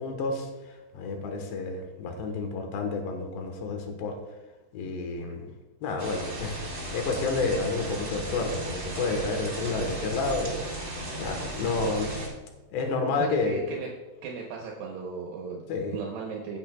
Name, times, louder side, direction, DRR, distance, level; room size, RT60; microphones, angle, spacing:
voice 1, 0.0-4.2 4.7-5.5 5.8-10.6 11.2-12.1 12.7-13.6 15.7-16.0, left 3 dB, 80° left, 4 dB, 3.3 m, -30 dB
sound 1, 6.0-12.3, right 1 dB, 25° right, 2.4 m, -35 dB
voice 2, 13.2-13.9 14.2-15.6 15.9-16.6, right 5 dB, 75° right, 0 dB, 2.9 m, -36 dB
15.5 x 8.2 x 2.3 m, 1.1 s
omnidirectional pair, 5.0 m